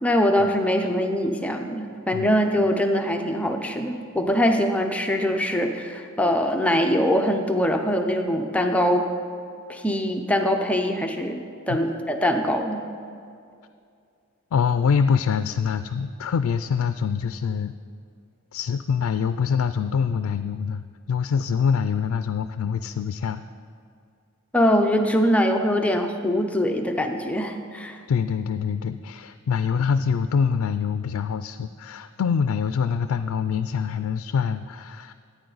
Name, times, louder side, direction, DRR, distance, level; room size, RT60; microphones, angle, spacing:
voice 1, 0.0-9.1 9.7-12.8 24.5-28.0, equal, 5° left, 4 dB, 0.6 m, -23 dB
voice 2, 14.5-17.7 18.5-23.4 28.1-35.1, left 6 dB, 85° left, 10 dB, 0.3 m, -25 dB
14.0 x 9.0 x 4.0 m, 2.3 s
head